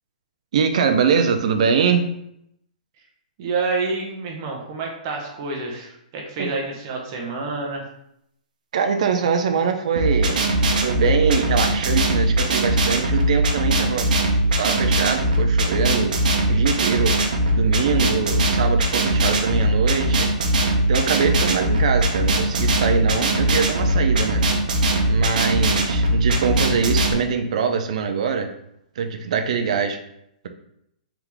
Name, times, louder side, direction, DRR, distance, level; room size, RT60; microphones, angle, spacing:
voice 1, 0.5-2.1 6.4-6.5 8.7-10.5 10.8-14.2 14.6-16.1 16.5-17.2 17.6-20.3 20.9-24.4 25.1-28.5 29.0-30.0, right 6 dB, 50° right, 6 dB, 0.5 m, -23 dB
voice 2, 3.4-7.9, right 3 dB, 30° right, 0 dB, 0.8 m, -28 dB
sound 1, 10.0-27.1, right 1 dB, 70° right, 0.8 m, -20 dB
3.7 x 3.5 x 3.0 m, 0.77 s
hypercardioid pair, 170°, 5 cm